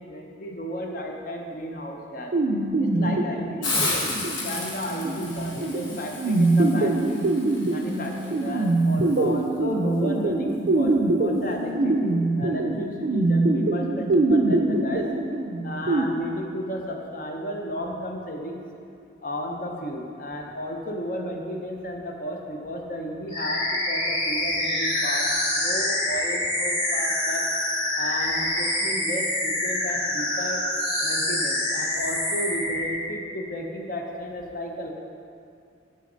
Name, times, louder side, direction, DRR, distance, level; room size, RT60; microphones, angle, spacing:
voice 1, 0.0-2.3 2.8-3.9 4.2-7.2 7.7-15.1 15.6-18.6 19.2-27.5 28.0-30.6 31.0-34.9, equal, 45° left, 1 dB, 0.7 m, -33 dB
sound 1, 2.3-16.0, right 2 dB, 55° right, 0.4 m, -24 dB
Hiss, 3.6-9.2, left 3 dB, 85° left, 1.4 m, -33 dB
sound 2, 23.3-33.0, left 1 dB, 25° left, 1.5 m, -26 dB
7.0 x 6.4 x 3.9 m, 2.5 s
head